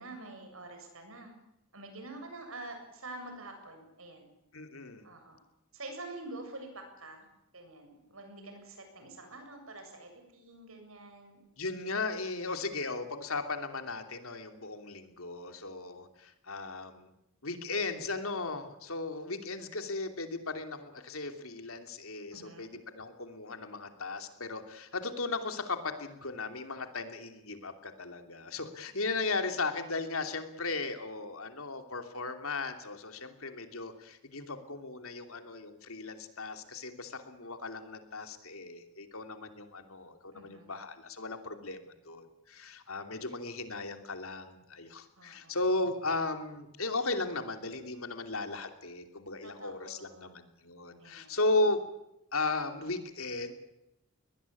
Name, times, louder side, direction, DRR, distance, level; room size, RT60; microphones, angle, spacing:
voice 1, 0.0-1.3 1.7-4.3 5.0-5.4 5.7-7.3 7.5-11.5 22.3-22.7 40.3-40.7 45.2-45.5 49.4-50.3 51.0-51.4, right 2 dB, 70° right, 5 dB, 7.7 m, -47 dB
voice 2, 4.5-5.0 11.6-17.1 17.4-51.8 52.3-53.5, left 3 dB, 75° left, 7 dB, 3.0 m, -36 dB
22.5 x 20.0 x 8.5 m, 0.88 s
head